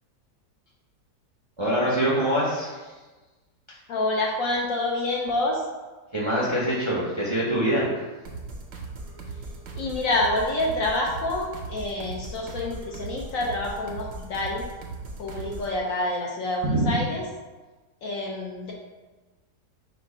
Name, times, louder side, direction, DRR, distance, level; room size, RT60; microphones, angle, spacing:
voice 1, 1.6-2.9 6.1-7.9 16.6-16.9, right 1 dB, 30° right, -6 dB, 0.5 m, -24 dB
voice 2, 3.9-5.7 9.7-14.7 15.2-17.2 18.0-18.7, left 2 dB, 65° left, -1 dB, 0.9 m, -27 dB
sound 1, 8.2-15.8, right 3 dB, 65° right, 0.9 m, -38 dB
4.5 x 2.4 x 4.7 m, 1.2 s
omnidirectional pair, 1.7 m